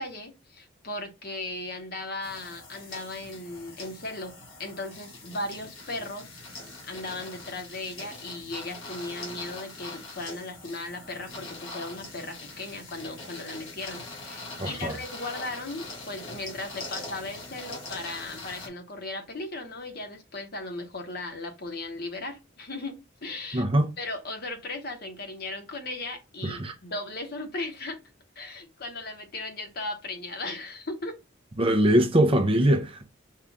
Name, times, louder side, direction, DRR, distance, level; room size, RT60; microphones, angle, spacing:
voice 1, 0.0-6.4 6.8-23.7 24.0-28.0 28.4-31.2, left 2 dB, 50° left, 1.0 m, -37 dB
sound 1, 2.2-18.7, left 2 dB, 85° left, 2.0 m, -42 dB
voice 2, 14.6-14.9 23.5-23.9 26.4-26.7 31.6-33.0, right 1 dB, 25° right, 0.6 m, -22 dB
5.6 x 2.4 x 3.5 m
head